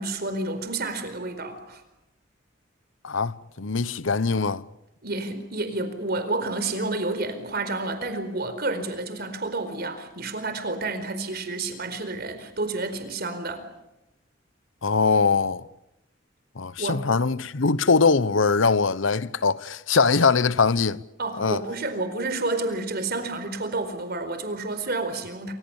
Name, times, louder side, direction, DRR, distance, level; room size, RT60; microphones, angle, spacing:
voice 1, 0.0-1.8 5.0-13.7 16.8-17.1 21.2-25.5, right 2 dB, 55° right, 4.5 m, -30 dB
voice 2, 3.0-4.7 14.8-15.6 16.6-21.0 21.4-21.6, left 4 dB, 85° left, 0.9 m, -22 dB
27.5 x 26.0 x 7.2 m
head